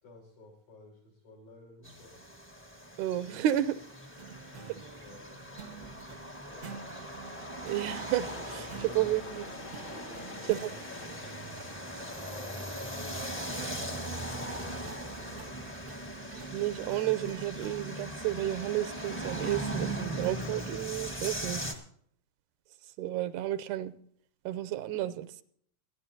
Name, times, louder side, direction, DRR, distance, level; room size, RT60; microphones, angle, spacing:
voice 1, 0.0-2.2 4.2-6.0 6.3-6.9 10.2-11.5 12.2-16.0, left 2 dB, 75° left, -1 dB, 6.6 m, -56 dB
sound 1, 1.8-21.7, right 1 dB, 10° left, 0.6 m, -39 dB
voice 2, 3.0-3.8 7.6-9.5 10.5-10.8 16.5-21.7 23.0-23.9 24.5-25.4, right 13 dB, 90° right, 13 dB, 2.3 m, -32 dB
sound 2, 4.2-10.7 14.5-17.9, right 6 dB, 70° right, 0.9 m, -49 dB
sound 3, 8.2-14.6, left 3 dB, 45° left, 1.9 m, -48 dB
28.5 x 11.0 x 2.8 m, 0.63 s
omnidirectional pair, 3.4 m